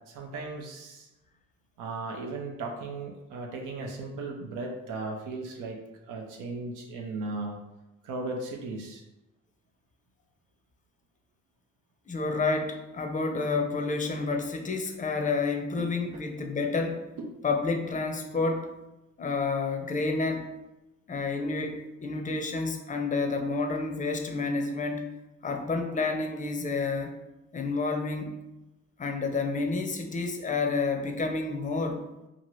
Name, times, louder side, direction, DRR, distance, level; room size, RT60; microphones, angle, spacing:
voice 1, 0.1-1.1 1.8-5.8 6.1-7.6 8.0-9.0 15.8-16.2, right 3 dB, 90° right, 1 dB, 0.5 m, -36 dB
voice 2, 12.1-17.1 17.4-18.7 19.2-20.5 21.1-25.1 25.4-27.2 27.5-28.4 29.0-32.1, left 3 dB, 25° left, 4 dB, 0.5 m, -29 dB
2.9 x 2.4 x 3.0 m, 0.97 s
cardioid pair, 90°, 30 cm